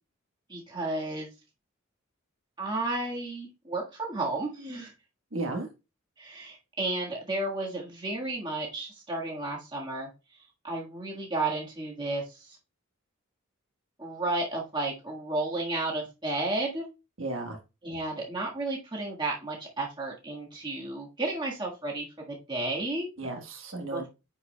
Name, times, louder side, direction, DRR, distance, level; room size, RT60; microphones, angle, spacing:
voice 1, 0.5-1.3 2.6-4.9 6.2-10.1 10.6-12.5 14.0-16.9 17.8-23.1 23.9-24.0, right 2 dB, 20° right, -2 dB, 1.5 m, -32 dB
voice 2, 5.3-5.7 17.2-17.6 23.2-24.1, right 2 dB, 65° right, 3 dB, 1.3 m, -34 dB
9.5 x 4.8 x 2.2 m, 0.28 s
head